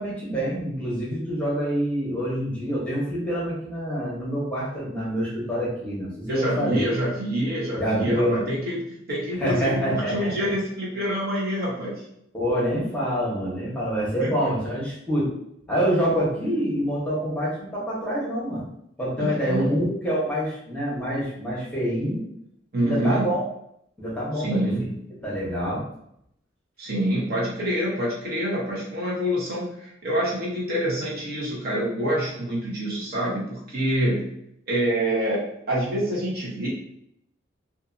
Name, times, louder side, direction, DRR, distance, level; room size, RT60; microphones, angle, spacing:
voice 1, 0.0-6.9 7.8-8.4 9.4-10.5 12.3-15.3 15.7-18.6 19.0-22.2 22.8-23.4 24.0-24.7 25.2-25.9, equal, 5° left, -7 dB, 0.9 m, -26 dB
voice 2, 6.3-12.0 14.2-14.3 19.2-19.7 22.7-23.3 24.4-25.0 26.8-34.3 34.7-36.7, equal, 50° right, -5 dB, 0.9 m, -26 dB
2.6 x 2.5 x 2.5 m, 0.74 s
head